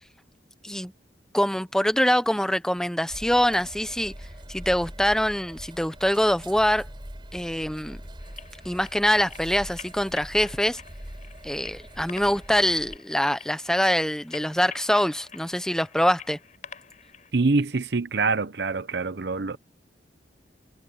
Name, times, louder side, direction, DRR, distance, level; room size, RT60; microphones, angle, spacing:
voice 1, 1.3-4.1 4.5-6.9 7.3-8.0 8.6-10.8 11.4-16.4, equal, 5° left, 0.9 m, -24 dB
sound 1, 3.1-13.0, equal, 25° right, 4.2 m, -43 dB
sound 2, 8.2-17.3, left 7 dB, 45° left, 4.4 m, -47 dB
voice 2, 17.3-19.6, right 3 dB, 70° right, 0.8 m, -25 dB
head